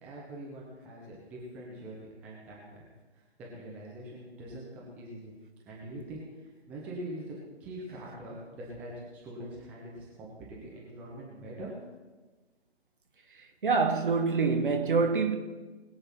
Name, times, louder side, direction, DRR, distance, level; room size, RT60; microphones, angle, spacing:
voice 1, 0.0-2.8 3.1-5.3 5.7-11.7, right 1 dB, 5° right, 0.8 m, -43 dB
voice 2, 13.6-15.4, right 4 dB, 50° right, 1.6 m, -25 dB
20.5 x 7.9 x 4.4 m
figure-of-eight pair, 140°, 34 cm